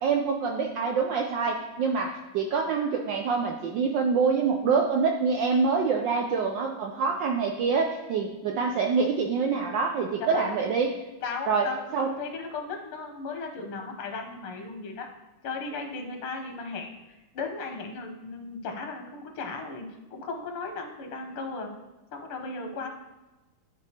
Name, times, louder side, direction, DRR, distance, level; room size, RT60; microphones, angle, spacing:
voice 1, 0.0-10.9 11.5-11.7 11.9-12.1, right 5 dB, 70° right, 2 dB, 1.1 m, -26 dB
voice 2, 10.2-10.7 11.2-15.1 15.4-21.7 22.1-22.9, left 4 dB, 85° left, 4 dB, 1.9 m, -36 dB
12.0 x 4.3 x 2.9 m, 1.1 s
omnidirectional pair, 2.4 m